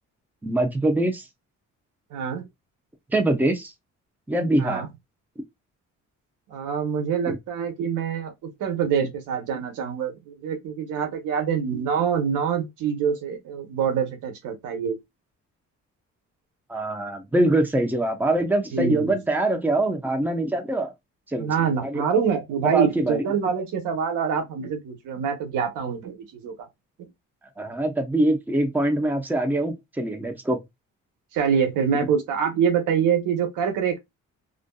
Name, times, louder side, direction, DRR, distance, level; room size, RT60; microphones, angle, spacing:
voice 1, 0.4-1.2 3.1-3.7 4.3-4.8 7.3-7.4 16.7-20.9 21.3-21.5 21.8-22.0 22.6-23.2 27.6-30.6, right 1 dB, 5° right, 0.6 m, -23 dB
voice 2, 2.1-2.5 4.6-4.9 6.5-15.0 18.7-19.2 21.4-26.5 27.0-27.1 31.3-34.0, right 7 dB, 85° right, 0.9 m, -25 dB
2.6 x 2.5 x 2.2 m
cardioid pair, 90°, 30 cm